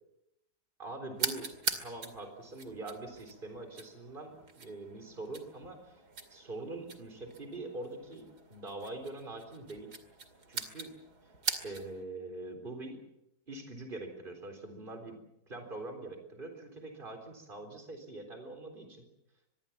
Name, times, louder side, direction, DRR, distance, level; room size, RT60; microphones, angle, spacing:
voice 1, 0.8-1.5 1.8-6.0 6.3-9.9 10.5-10.9 11.6-13.0 13.5-15.2 15.5-19.1, right 2 dB, 30° right, 6 dB, 4.0 m, -43 dB
sound 1, 1.1-12.0, right 4 dB, 65° right, 3.0 m, -42 dB
25.0 x 21.5 x 7.2 m, 0.85 s
omnidirectional pair, 1.9 m